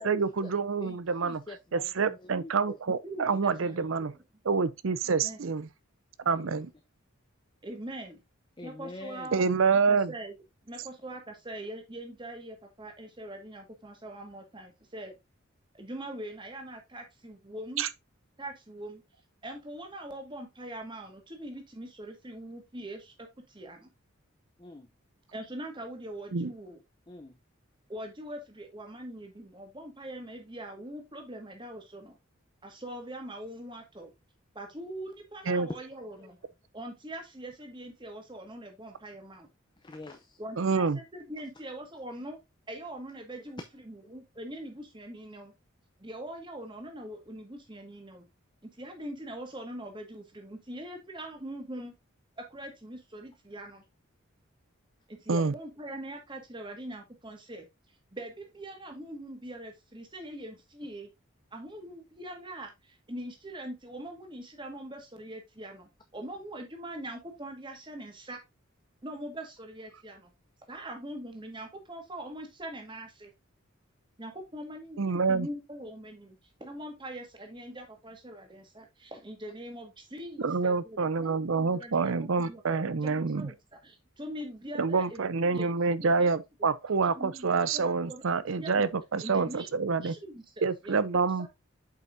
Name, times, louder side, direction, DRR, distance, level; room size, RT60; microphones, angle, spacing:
voice 1, 0.0-1.4 1.7-4.1 4.4-5.7 6.2-6.7 9.3-10.1 17.8-17.9 26.3-26.5 35.5-35.7 40.6-41.0 55.3-55.5 75.0-75.5 80.4-83.5 84.8-90.2 90.6-91.5, right 4 dB, 70° right, 0.6 m, -27 dB
voice 2, 0.8-2.8 3.3-3.8 6.4-6.6 8.6-9.3 24.6-24.9 27.1-27.4 36.2-36.3 39.8-40.4 44.0-44.2, left 2 dB, 20° left, 0.6 m, -46 dB
voice 3, 3.0-3.8 4.1-4.2 5.0-5.5 7.6-8.2 8.6-10.3 10.6-15.1 15.7-17.8 18.4-19.0 19.4-23.9 25.3-26.8 27.9-32.2 32.6-34.1 34.5-36.4 36.7-39.5 40.4-42.4 42.7-45.5 46.0-48.3 48.6-51.9 52.4-53.8 55.1-61.1 61.5-68.4 69.0-70.3 70.7-73.3 74.2-86.3 87.0-88.2 88.6-88.9 89.2-91.0 91.4-91.5, right 1 dB, 25° right, 1.7 m, -42 dB
7.9 x 5.5 x 2.6 m
head